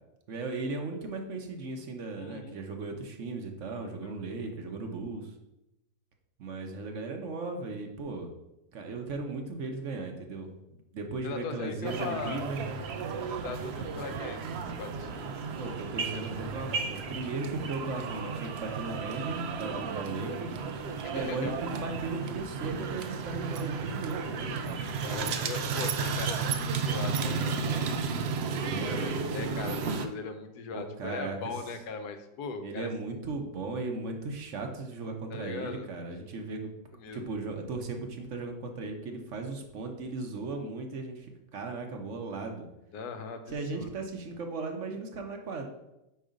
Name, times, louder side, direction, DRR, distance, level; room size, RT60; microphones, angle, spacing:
voice 1, 0.3-5.3 6.4-8.3 8.7-12.8 15.6-20.5 21.1-24.5 28.5-29.2 30.7-31.4 32.6-36.7 37.1-42.7 43.5-45.7, right 3 dB, 55° right, 4 dB, 1.0 m, -37 dB
voice 2, 2.2-2.6 4.0-4.1 11.2-12.4 13.3-15.8 20.3-20.5 21.0-21.6 25.0-28.2 28.9-32.9 35.3-35.9 36.9-37.3 42.9-44.0, left 5 dB, 70° left, 8 dB, 1.2 m, -40 dB
sound 1, 11.8-30.1, right 5 dB, 75° right, 0.5 m, -33 dB
5.4 x 4.9 x 5.1 m, 0.91 s
omnidirectional pair, 1.8 m